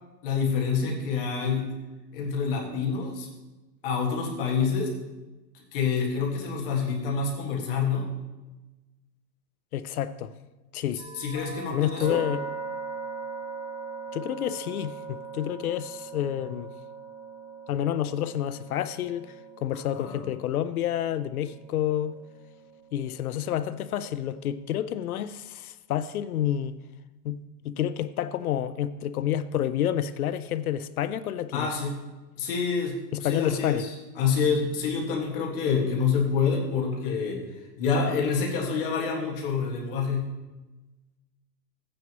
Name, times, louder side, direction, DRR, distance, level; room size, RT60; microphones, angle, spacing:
voice 1, 0.2-1.7 2.1-3.3 3.8-4.9 5.5-8.1 11.1-12.2 19.7-20.3 31.5-32.0 32.4-37.4 37.8-40.3, left 5 dB, 35° left, 1.8 m, -27 dB
voice 2, 9.7-10.3 10.7-11.0 11.7-12.4 14.1-16.7 17.7-19.3 19.6-22.2 22.9-26.8 27.2-27.4 27.6-31.8 33.1-33.8, left 11 dB, 60° left, 0.5 m, -29 dB
sound 1, 11.0-24.9, right 4 dB, 40° right, 2.2 m, -41 dB
14.0 x 9.5 x 3.0 m
supercardioid pair, 175°, 50 cm